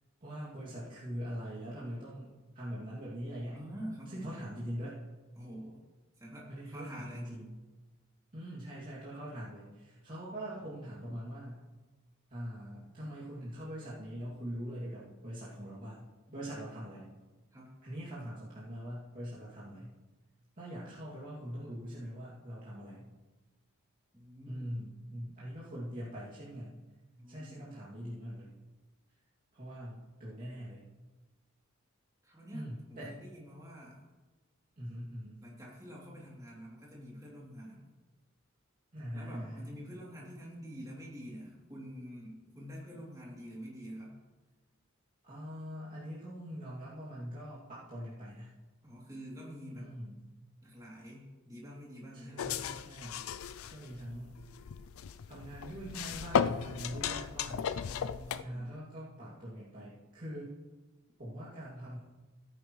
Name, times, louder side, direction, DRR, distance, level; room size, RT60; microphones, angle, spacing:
voice 1, 0.2-2.3 2.5-3.6 4.1-5.0 6.5-7.6 8.3-11.6 12.3-17.1 17.8-20.0 20.6-23.1 24.5-26.8 27.3-28.5 29.5-30.9 32.5-33.2 34.8-35.4 38.9-39.7 45.2-48.6 49.7-50.2 52.1-53.2 53.7-54.4 55.3-57.7 58.4-60.6 61.2-62.0, equal, 40° right, -10 dB, 2.5 m, -43 dB
voice 2, 3.5-4.3 5.4-5.8 6.2-7.3 16.3-16.6 17.5-17.7 24.1-24.8 27.2-27.7 32.2-34.0 35.4-37.9 39.1-44.2 48.8-49.9 50.6-52.6 57.8-58.7, equal, 15° right, -5 dB, 3.0 m, -47 dB
sound 1, 52.4-58.4, left 7 dB, 85° left, 0.4 m, -35 dB
17.0 x 10.0 x 3.2 m, 1.2 s
head